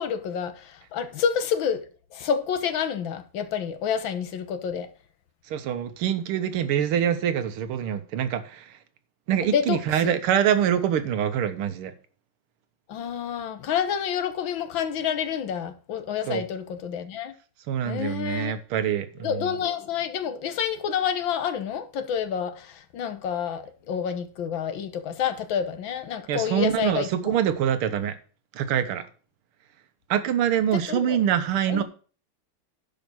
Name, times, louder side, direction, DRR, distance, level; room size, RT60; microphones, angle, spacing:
voice 1, 0.0-1.8 2.1-4.9 9.4-10.1 12.9-17.3 17.8-18.5 19.2-27.3 30.7-31.2 31.7-31.8, left 8 dB, 70° left, 1.7 m, -28 dB
voice 2, 5.5-8.7 9.3-11.9 16.3-16.4 17.7-19.5 26.3-28.2 28.5-29.0 30.1-31.8, right 9 dB, 85° right, 1.8 m, -25 dB
10.5 x 5.1 x 6.1 m
omnidirectional pair, 2.3 m